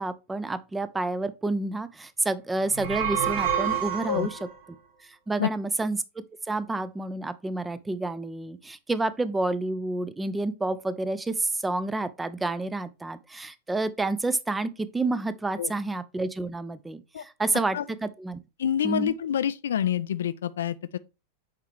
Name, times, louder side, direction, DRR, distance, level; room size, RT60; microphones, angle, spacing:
voice 1, 0.0-4.4 5.0-6.0 6.5-18.4 18.8-19.1, right 2 dB, 10° right, 0.5 m, -29 dB
sound 1, 2.6-4.5, right 9 dB, 50° right, 1.1 m, -28 dB
voice 2, 18.6-21.0, left 9 dB, 65° left, 0.3 m, -27 dB
6.6 x 4.5 x 3.3 m
figure-of-eight pair, 90°, 0 cm